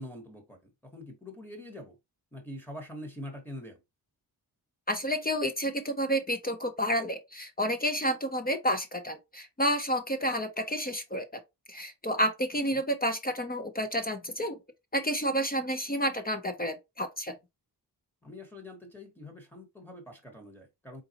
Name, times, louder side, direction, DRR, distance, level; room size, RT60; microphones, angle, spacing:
voice 1, 0.0-2.0 2.3-3.8 12.7-12.8 18.2-21.0, left 1 dB, 5° left, 1.0 m, -44 dB
voice 2, 4.9-11.4 11.7-14.6 14.9-17.3, equal, 20° left, 0.5 m, -30 dB
3.9 x 3.8 x 2.8 m
wide cardioid pair, 155°, 41 cm